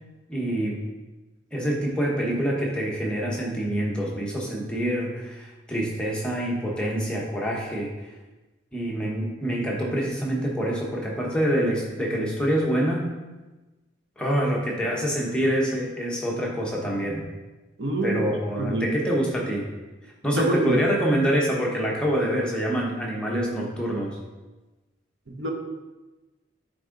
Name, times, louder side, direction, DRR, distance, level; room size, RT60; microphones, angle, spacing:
voice 1, 0.3-0.8 1.5-7.9 8.7-13.1 14.2-17.2 18.0-19.7 20.2-24.2, equal, 5° left, -3 dB, 1.0 m, -26 dB
voice 2, 17.8-18.2 18.6-18.9 20.3-20.8 25.3-25.5, right 2 dB, 70° right, 1 dB, 1.0 m, -25 dB
8.9 x 3.6 x 3.8 m, 1.2 s
head